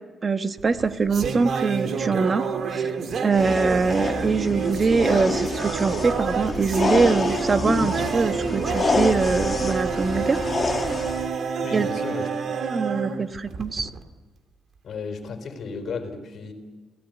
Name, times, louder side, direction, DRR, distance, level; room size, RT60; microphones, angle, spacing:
voice 1, 0.2-2.4 2.7-3.0 3.2-10.4 11.7-11.9 12.7-13.9, right 4 dB, 35° right, 8 dB, 1.4 m, -23 dB
sound 1, 0.6-14.0, right 5 dB, 55° right, 2.5 m, -28 dB
sound 2, 3.3-11.3, left 3 dB, 30° left, 1.9 m, -28 dB
voice 2, 11.6-12.3 14.8-16.5, left 4 dB, 60° left, 7 dB, 4.5 m, -34 dB
29.0 x 18.5 x 9.2 m, 1.3 s
cardioid pair, 125°, 0 cm